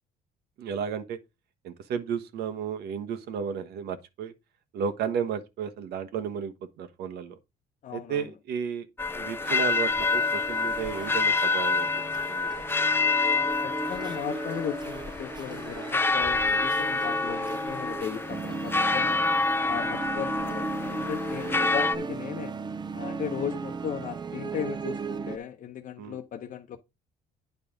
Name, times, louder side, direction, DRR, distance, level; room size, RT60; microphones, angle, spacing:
voice 1, 0.6-1.2 1.6-4.3 4.7-7.4 7.9-8.9 9.1-11.9 12.3-12.5 16.4-16.6 26.0-26.2, right 7 dB, 75° right, 1.3 m, -33 dB
voice 2, 7.8-8.3 13.3-19.2 19.7-22.5 22.9-26.8, left 9 dB, 50° left, 1.0 m, -36 dB
sound 1, 9.0-22.0, left 3 dB, 15° left, 0.5 m, -27 dB
sound 2, 9.4-25.4, right 4 dB, 25° right, 0.7 m, -37 dB
9.4 x 4.3 x 5.1 m
cardioid pair, 110°, 17 cm